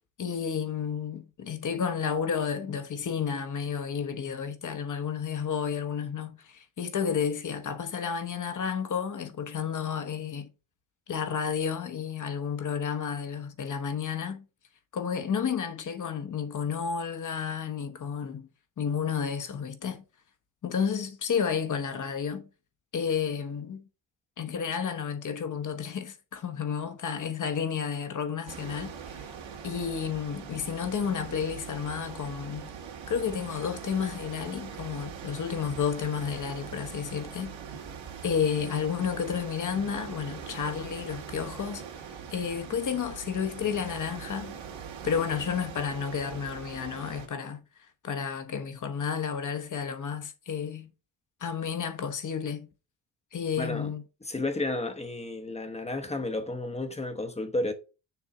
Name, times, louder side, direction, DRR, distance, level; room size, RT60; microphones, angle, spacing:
voice 1, 0.2-10.5 11.1-14.4 14.9-18.5 18.8-20.0 20.6-22.5 22.9-23.8 24.4-29.3 29.6-32.7 33.1-37.6 38.2-42.0 42.3-44.5 45.0-47.6 48.0-50.9 51.4-52.7 53.3-54.0, left 7 dB, 40° left, 1.0 m, -31 dB
sound 1, 28.5-47.3, right 7 dB, 70° right, 2.0 m, -42 dB
voice 2, 53.6-53.9 54.2-57.7, left 2 dB, 15° left, 0.9 m, -32 dB
6.9 x 3.5 x 6.0 m
cardioid pair, 135°, 47 cm